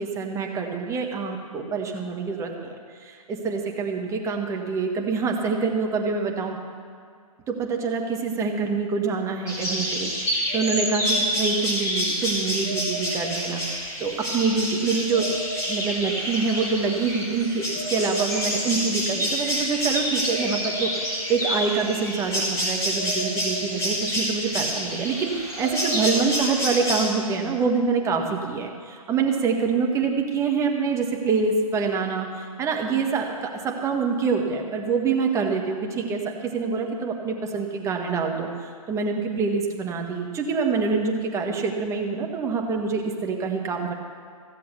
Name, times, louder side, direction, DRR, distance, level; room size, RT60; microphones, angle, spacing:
voice 1, 0.0-6.6 7.5-13.6 14.0-15.3 15.7-43.9, right 5 dB, 15° right, 2 dB, 1.3 m, -26 dB
sound 1, 9.5-27.0, equal, 15° left, 3.6 m, -27 dB
15.0 x 7.6 x 6.8 m, 2.1 s
hypercardioid pair, 130°, 19 cm